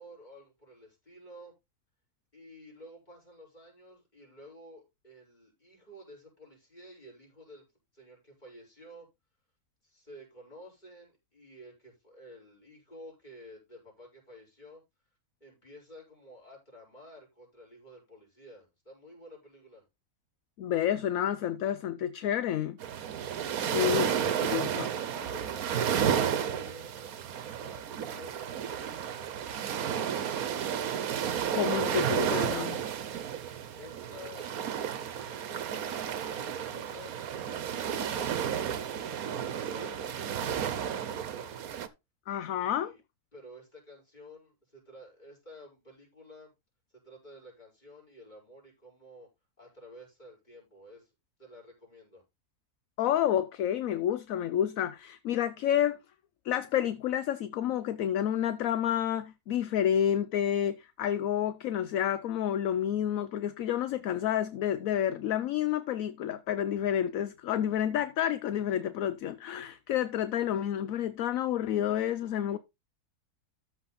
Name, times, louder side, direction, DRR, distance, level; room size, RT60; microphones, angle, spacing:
voice 1, 0.0-1.5 2.3-7.7 7.9-9.1 9.8-14.8 15.4-19.8 24.8-30.9 33.8-37.2 37.8-41.6 42.5-43.0 43.3-46.5 46.9-49.3 49.6-51.1 51.4-52.2, equal, 30° left, 5.3 m, -52 dB
voice 2, 20.6-22.8 23.7-24.9 31.5-32.8 42.3-42.9 53.0-56.0 56.4-72.6, left 10 dB, 70° left, 1.0 m, -29 dB
sound 1, 22.8-41.9, right 8 dB, 70° right, 1.3 m, -32 dB
13.5 x 4.8 x 4.1 m
omnidirectional pair, 1.6 m